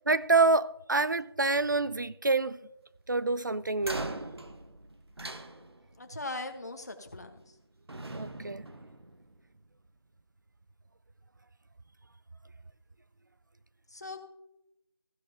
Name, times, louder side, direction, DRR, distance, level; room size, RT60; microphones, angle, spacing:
voice 1, 0.1-2.6 3.1-4.1 8.1-8.6, right 3 dB, 50° right, 0.4 m, -27 dB
sound 1, 3.8-6.1 7.2-7.6 7.9-9.6, right 2 dB, 85° right, 1.4 m, -41 dB
voice 2, 6.0-7.6 13.9-14.2, left 2 dB, 40° left, 1.4 m, -40 dB
15.0 x 11.0 x 2.9 m
figure-of-eight pair, 175°, 13 cm